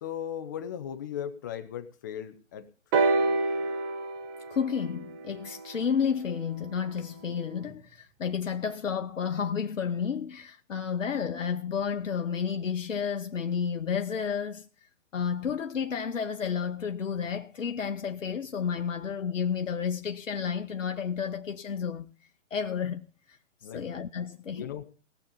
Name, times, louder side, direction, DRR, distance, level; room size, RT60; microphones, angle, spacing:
voice 1, 0.0-2.7 23.6-23.8 24.5-24.8, left 9 dB, 15° left, 0.5 m, -37 dB
sound 1, 2.9-6.7 7.7-7.8, right 3 dB, 15° right, 0.7 m, -29 dB
voice 2, 4.5-14.7 15.1-22.1 22.5-23.1 23.7-24.7, left 7 dB, 85° left, 0.9 m, -31 dB
19.0 x 7.1 x 5.3 m
hypercardioid pair, 145°, 37 cm